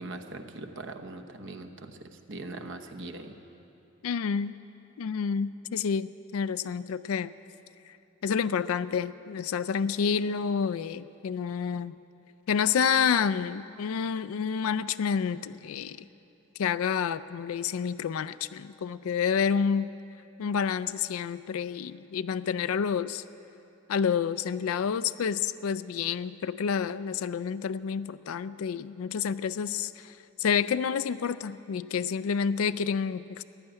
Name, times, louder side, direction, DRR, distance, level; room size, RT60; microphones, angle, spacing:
voice 1, 0.0-2.0 2.3-3.3, right 2 dB, 60° right, 7 dB, 1.0 m, -40 dB
voice 2, 4.0-4.5 5.0-7.3 7.9-8.0 8.2-11.9 12.5-16.1 16.6-19.9 20.4-23.2 23.9-33.4, left 6 dB, 85° left, 13 dB, 0.4 m, -29 dB
15.5 x 10.5 x 8.9 m, 2.8 s
head